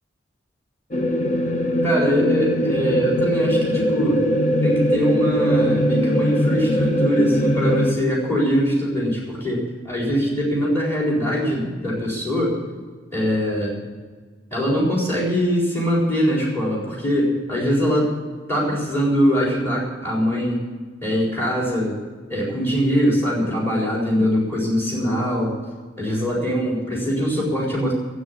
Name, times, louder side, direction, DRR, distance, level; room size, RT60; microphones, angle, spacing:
sound 1, 0.9-7.9, equal, 45° left, 1.0 m, -21 dB
voice 1, 1.8-4.3 4.6-12.6 13.1-13.8 14.5-18.1 18.5-20.6 21.0-22.0 22.3-25.5 26.0-27.9, equal, 15° left, -4 dB, 4.3 m, -22 dB
12.5 x 9.3 x 9.6 m, 1.4 s
head